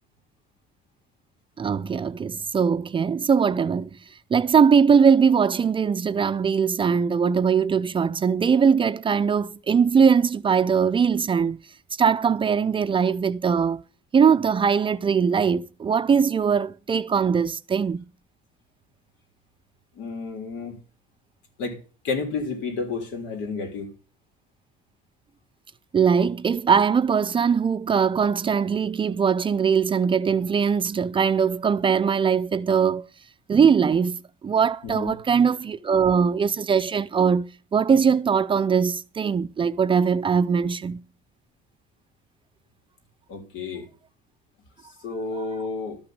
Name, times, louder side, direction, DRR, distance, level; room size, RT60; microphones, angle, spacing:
voice 1, 1.6-3.9 4.3-11.6 12.0-13.8 14.1-18.0 25.9-33.0 33.5-41.0, right 6 dB, 30° right, 0.5 m, -21 dB
voice 2, 20.0-20.8 21.6-21.8 22.0-23.9 34.8-35.1 43.3-43.9 45.0-46.0, left 4 dB, 80° left, 3.5 m, -31 dB
12.5 x 5.9 x 7.8 m
cardioid pair, 125°, 18 cm